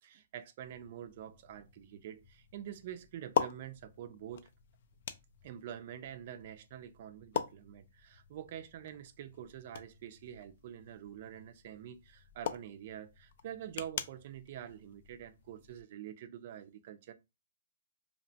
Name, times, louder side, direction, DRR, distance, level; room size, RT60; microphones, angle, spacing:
voice 1, 0.0-4.5 5.4-17.1, right 10 dB, 45° right, 0.4 m, -46 dB
sound 1, 0.6-15.8, left 8 dB, 55° left, 0.3 m, -43 dB
2.8 x 2.0 x 2.7 m
hypercardioid pair, 155°, 0 cm